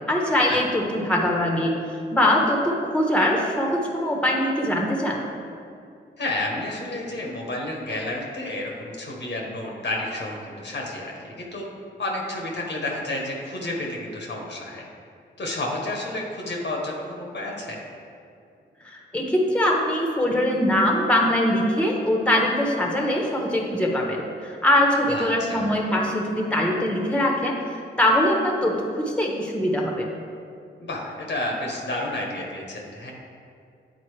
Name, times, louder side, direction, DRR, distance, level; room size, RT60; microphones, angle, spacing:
voice 1, 0.1-1.7 2.1-5.2 18.8-27.6 28.0-30.1, left 1 dB, 5° left, -1 dB, 1.1 m, -22 dB
voice 2, 6.2-11.7 12.0-14.8 15.4-17.8 25.1-25.7 30.8-33.1, left 1 dB, 60° left, -1 dB, 1.2 m, -31 dB
8.3 x 4.0 x 3.3 m, 2.5 s
cardioid pair, 50°, 20 cm